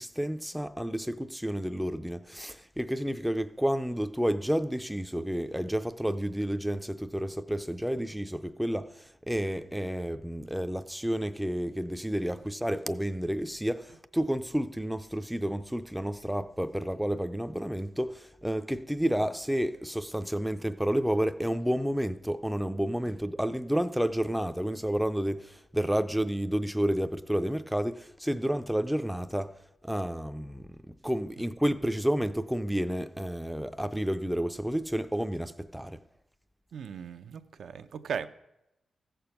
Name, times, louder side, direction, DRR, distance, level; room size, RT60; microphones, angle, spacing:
voice 1, 0.0-29.5 29.8-30.7 31.0-36.0, equal, ahead, 0.4 m, -30 dB
voice 2, 36.7-38.3, right 7 dB, 75° right, 0.6 m, -37 dB
15.0 x 6.9 x 5.8 m
wide cardioid pair, 150°, 0 cm